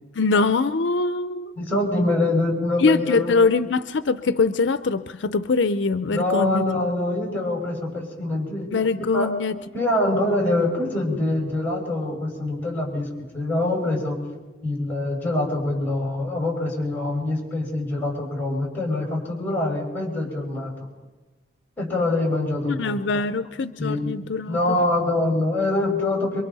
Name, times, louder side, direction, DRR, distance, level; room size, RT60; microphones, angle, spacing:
voice 1, 0.1-1.5 2.8-6.7 8.7-9.6 22.6-24.8, left 4 dB, 70° left, 12 dB, 0.5 m, -23 dB
voice 2, 1.6-3.3 6.1-8.7 9.1-9.3 9.7-13.1 13.3-14.2 14.6-20.7 21.8-23.3 23.8-24.1 24.5-26.4, left 2 dB, 10° left, -1 dB, 5.3 m, -24 dB
26.5 x 23.5 x 4.1 m, 1.2 s
head